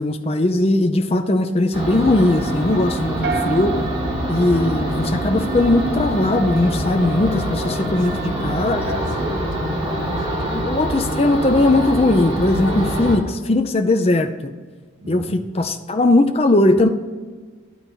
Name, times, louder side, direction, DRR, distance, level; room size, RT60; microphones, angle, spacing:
voice 1, 0.0-3.8 4.3-8.8 10.5-14.5 15.1-16.9, left 2 dB, 30° left, 7 dB, 0.5 m, -19 dB
sound 1, 1.7-13.2, equal, 30° right, 2.0 m, -24 dB
sound 2, 3.2-5.5, right 6 dB, 50° right, 0.5 m, -30 dB
voice 2, 8.1-10.7 15.0-15.4, equal, 65° right, 0 dB, 1.2 m, -32 dB
11.5 x 4.0 x 4.5 m, 1.5 s
head